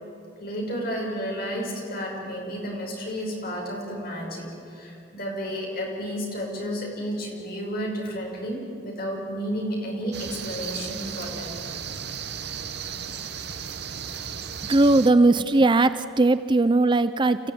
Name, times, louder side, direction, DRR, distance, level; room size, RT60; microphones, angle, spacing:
voice 1, 0.4-11.5, equal, 50° left, -1 dB, 5.7 m, -32 dB
sound 1, 10.1-15.1, right 7 dB, 55° right, 1.0 m, -35 dB
voice 2, 14.6-17.5, right 2 dB, 25° right, 13 dB, 0.5 m, -19 dB
28.5 x 14.5 x 9.1 m, 2.6 s
head